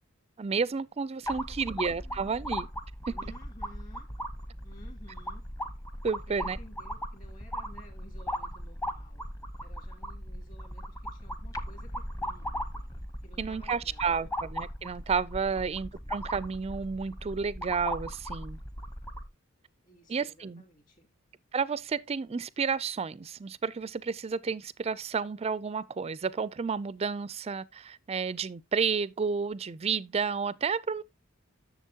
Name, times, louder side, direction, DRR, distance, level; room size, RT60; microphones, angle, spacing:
voice 1, 0.4-2.7 3.1-3.2 6.0-6.6 13.4-18.6 20.1-20.6 21.5-31.0, right 5 dB, 30° right, 0.4 m, -31 dB
voice 2, 1.3-2.5 3.1-4.1 4.6-5.4 6.3-9.2 9.6-12.5 13.2-14.3 15.5-15.7 16.0-16.1 19.8-21.1, equal, 40° left, 2.8 m, -55 dB
sound 1, 1.3-19.3, equal, 15° left, 0.9 m, -38 dB
11.0 x 6.9 x 2.8 m
head